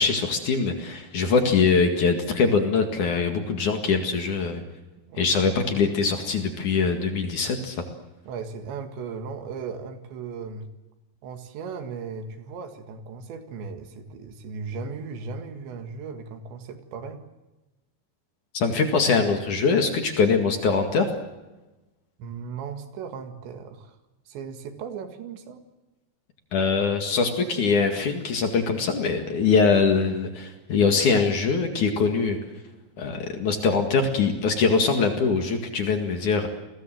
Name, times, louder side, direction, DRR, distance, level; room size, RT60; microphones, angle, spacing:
voice 1, 0.0-4.6 5.2-7.8 18.5-21.1 26.5-32.4 33.0-36.5, left 5 dB, 50° left, 4 dB, 3.0 m, -23 dB
voice 2, 8.3-10.7 11.2-17.2 22.2-24.0 24.3-25.6, right 5 dB, 80° right, 6 dB, 4.2 m, -37 dB
30.0 x 20.5 x 7.8 m, 1.1 s
omnidirectional pair, 5.1 m